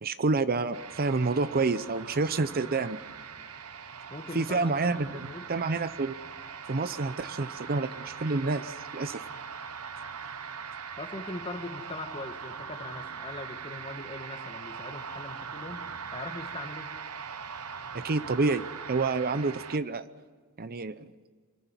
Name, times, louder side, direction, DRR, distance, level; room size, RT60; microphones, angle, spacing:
voice 1, 0.0-3.0 4.3-6.2 6.7-9.2 17.9-20.1 20.6-21.0, right 3 dB, 45° right, 14 dB, 0.7 m, -28 dB
sound 1, 0.7-19.8, right 6 dB, 80° right, 1.1 m, -41 dB
voice 2, 4.1-5.5 11.0-16.9, left 2 dB, 25° left, 7 dB, 1.7 m, -41 dB
25.0 x 15.0 x 9.8 m, 1.5 s
head